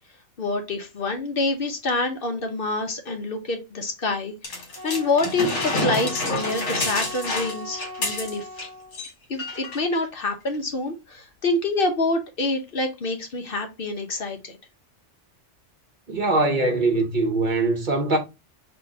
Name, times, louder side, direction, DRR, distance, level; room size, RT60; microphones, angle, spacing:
voice 1, 0.4-8.7 9.3-14.6, left 2 dB, 50° left, 0.9 m, -27 dB
sound 1, 4.4-8.7 8.9-9.1 9.4-9.8 10.5-10.6, left 2 dB, 70° left, 1.7 m, -28 dB
Wind instrument woodwind instrument, 4.8-9.0, equal, 85° right, 1.4 m, -38 dB
voice 2, 16.1-18.2, right 2 dB, 45° right, 0.9 m, -22 dB
4.0 x 2.5 x 4.7 m
omnidirectional pair, 1.3 m